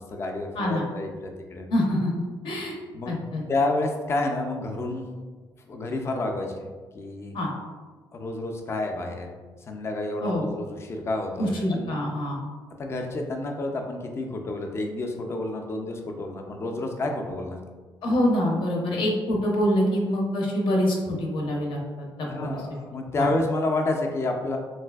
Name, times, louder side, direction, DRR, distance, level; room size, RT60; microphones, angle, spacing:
voice 1, 0.0-1.7 2.9-3.1 3.5-5.2 5.7-6.7 6.9-7.3 8.1-9.3 9.7-12.0 12.8-17.6 22.3-24.6, left 2 dB, 30° left, 3 dB, 0.3 m, -29 dB
voice 2, 1.7-2.1 2.4-2.8 3.1-3.4 7.3-7.5 10.2-10.5 11.4-12.4 18.0-22.6 23.2-23.3, equal, 70° left, -1 dB, 0.6 m, -25 dB
3.2 x 2.6 x 2.3 m, 1.4 s
cardioid pair, 145°, 9 cm